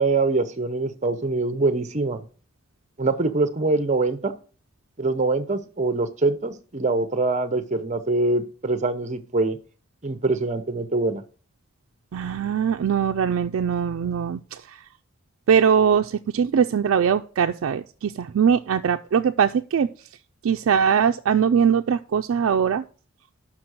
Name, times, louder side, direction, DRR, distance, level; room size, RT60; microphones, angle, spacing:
voice 1, 0.0-2.2 3.0-4.3 5.0-9.6 10.0-11.2, right 3 dB, 35° right, 11 dB, 0.7 m, -24 dB
voice 2, 12.1-14.8 15.5-19.9 20.4-22.8, right 7 dB, 80° right, 5 dB, 0.4 m, -21 dB
6.0 x 5.9 x 6.4 m, 0.40 s
head